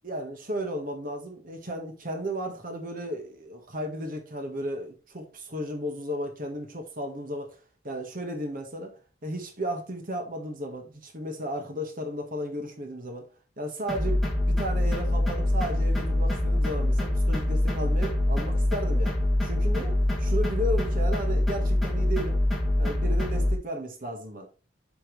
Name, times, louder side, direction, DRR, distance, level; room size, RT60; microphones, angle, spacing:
voice 1, 0.0-8.9 9.2-13.3 13.6-19.1 19.4-22.4 22.8-24.5, equal, 45° right, 1.5 m, -34 dB
sound 1, 13.9-23.5, left 1 dB, ahead, 2.4 m, -25 dB
8.1 x 6.1 x 3.2 m
head